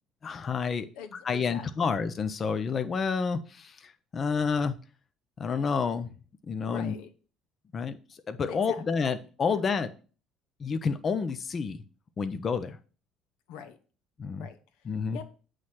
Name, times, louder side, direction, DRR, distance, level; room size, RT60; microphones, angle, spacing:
voice 1, 0.2-0.9 1.2-4.8 5.4-6.1 6.5-6.9 7.7-8.0 8.3-9.9 10.6-11.8 12.2-12.8 14.2-14.5 14.9-15.2, left 5 dB, 30° left, 10 dB, 0.5 m, -29 dB
voice 2, 0.7-2.0 6.6-7.1 8.5-9.1 9.5-9.7 13.5-13.8 14.4-15.3, left 7 dB, 85° left, 9 dB, 0.8 m, -44 dB
7.9 x 3.2 x 5.8 m, 0.38 s
cardioid pair, 135°, 0 cm